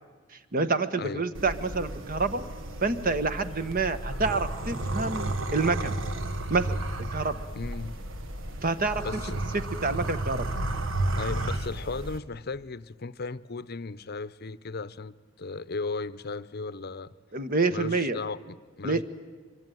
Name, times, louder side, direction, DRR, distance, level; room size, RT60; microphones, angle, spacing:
voice 1, 0.5-2.4 2.8-6.0 6.5-6.7 7.1-7.4 8.6-9.0 9.5-10.5 17.3-18.2 18.8-19.0, right 3 dB, 45° right, 1.3 m, -27 dB
sound 1, 1.3-12.2, right 1 dB, 75° right, 1.6 m, -33 dB
voice 2, 7.6-8.0 9.0-9.4 11.2-17.2 17.7-19.0, left 3 dB, 50° left, 0.8 m, -36 dB
25.0 x 23.5 x 9.3 m
head